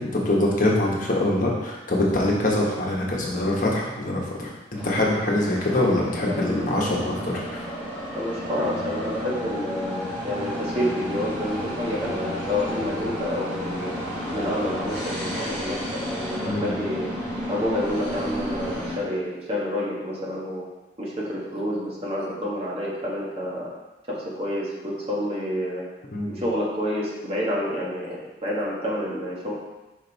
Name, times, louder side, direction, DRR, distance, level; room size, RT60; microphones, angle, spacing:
voice 1, 0.0-7.6 16.4-16.7 26.1-26.4, left 1 dB, 50° left, -3 dB, 1.2 m, -24 dB
sound 1, 4.7-19.0, equal, 5° right, 2.3 m, -32 dB
voice 2, 6.1-6.6 8.1-14.0 14.3-17.1 17.5-20.7 21.0-23.7 24.1-25.8 26.3-29.5, left 1 dB, 35° right, -5 dB, 1.5 m, -29 dB
5.3 x 5.2 x 4.0 m, 1.1 s
head